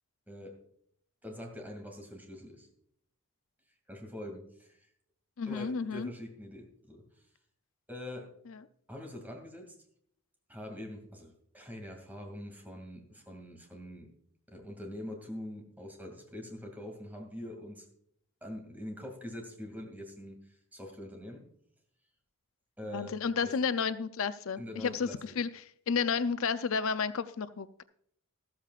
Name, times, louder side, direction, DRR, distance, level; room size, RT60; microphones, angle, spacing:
voice 1, 0.3-0.6 1.2-2.7 3.9-4.8 5.5-7.0 7.9-8.3 8.9-9.7 10.5-14.1 14.5-17.9 18.4-20.4 20.7-21.4 22.8-23.5 24.6-25.4, left 1 dB, 10° right, 2.4 m, -44 dB
voice 2, 5.4-6.1 8.5-8.6 22.9-27.8, left 5 dB, 65° left, 0.5 m, -32 dB
14.0 x 14.0 x 2.4 m
head